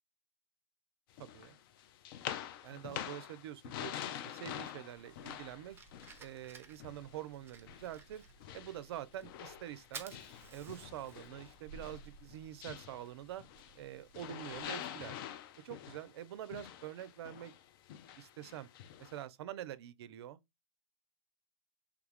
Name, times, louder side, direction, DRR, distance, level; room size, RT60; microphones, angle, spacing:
sound 1, 1.2-7.3 7.7-13.9 14.1-19.2, left 10 dB, 50° left, 0.4 m, -46 dB
voice 1, 1.2-1.6 2.6-3.9 4.2-5.8 6.2-8.2 8.5-10.2 10.5-13.4 13.8-15.2 15.6-17.5 18.2-18.7 19.0-20.4, right 12 dB, 60° right, 0.4 m, -46 dB
Fire, 5.0-14.6, right 5 dB, 15° right, 0.6 m, -55 dB
3.4 x 2.3 x 3.3 m
hypercardioid pair, 110°, 15 cm